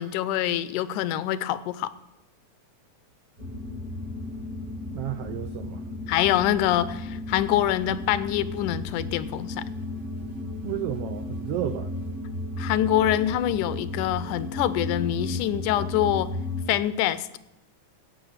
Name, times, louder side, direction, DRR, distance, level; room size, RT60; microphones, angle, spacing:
voice 1, 0.0-1.9 6.1-9.6 12.6-16.4 16.7-17.4, left 12 dB, 90° left, 16 dB, 2.1 m, -25 dB
sound 1, 3.4-16.8, left 2 dB, 45° right, 0.7 m, -34 dB
voice 2, 4.9-5.9 10.6-11.9, right 12 dB, 90° right, 9 dB, 1.3 m, -32 dB
15.5 x 5.6 x 8.6 m, 0.91 s
omnidirectional pair, 3.5 m